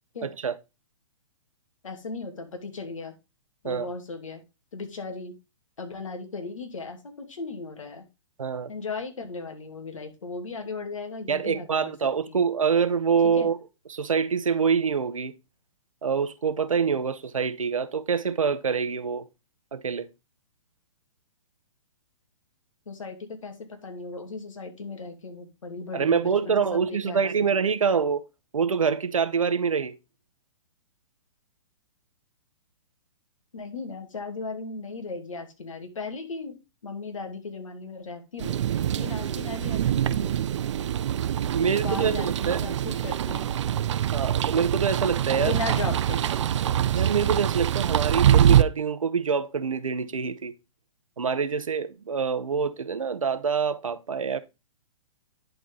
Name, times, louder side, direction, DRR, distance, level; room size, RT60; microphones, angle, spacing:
voice 1, 0.2-0.5 3.6-3.9 8.4-8.7 11.3-13.6 13.9-15.3 16.0-19.2 19.7-20.1 25.9-28.2 28.5-30.0 39.1-39.4 41.5-42.6 44.1-45.5 46.9-50.5 51.2-54.4, right 6 dB, 90° right, 1.0 m, -25 dB
voice 2, 1.8-3.1 3.6-4.4 4.7-5.4 5.8-8.0 8.7-11.9 12.3-12.4 13.2-13.5 22.9-27.5 33.5-38.7 39.0-40.3 41.6-43.4 45.4-46.3, left 3 dB, 80° left, 2.7 m, -37 dB
sound 1, 38.4-48.6, right 10 dB, 65° right, 0.6 m, -24 dB
10.5 x 4.7 x 3.9 m
hypercardioid pair, 130°, 17 cm